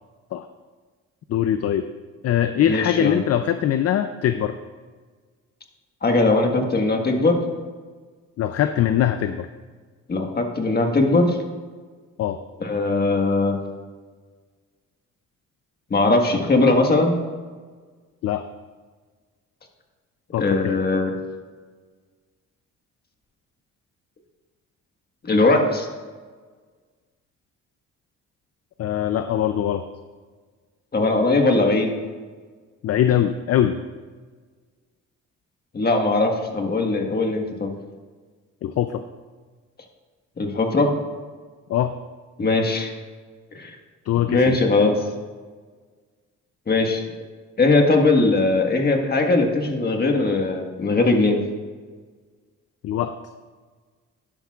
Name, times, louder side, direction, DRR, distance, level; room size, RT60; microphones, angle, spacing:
voice 1, 1.3-1.9 2.2-4.6 8.4-9.5 12.2-12.4 18.2-18.5 20.3-20.8 28.8-29.8 32.8-33.8 38.6-39.0 41.7-42.0 44.1-44.5 52.8-53.2, left 10 dB, 55° left, 9 dB, 0.5 m, -22 dB
voice 2, 2.7-3.2 6.0-7.4 10.1-11.4 12.6-13.6 15.9-17.1 20.4-21.1 25.2-25.9 30.9-31.9 35.7-37.7 40.4-40.9 42.4-42.9 43.5-43.7 44.3-45.0 46.7-47.0 47.6-51.4, left 2 dB, 30° left, 3 dB, 1.5 m, -20 dB
12.0 x 10.5 x 2.4 m, 1.5 s
cardioid pair, 90°, 30 cm